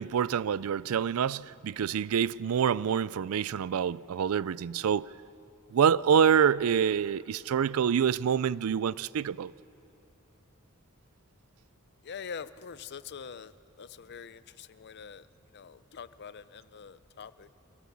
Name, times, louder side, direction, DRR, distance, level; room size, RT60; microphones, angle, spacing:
voice 1, 0.0-5.1 5.7-9.5, right 7 dB, 80° right, 0.4 m, -26 dB
voice 2, 12.0-13.5 13.8-15.3 15.5-17.5, left 6 dB, 50° left, 0.5 m, -44 dB
25.5 x 16.0 x 7.1 m
head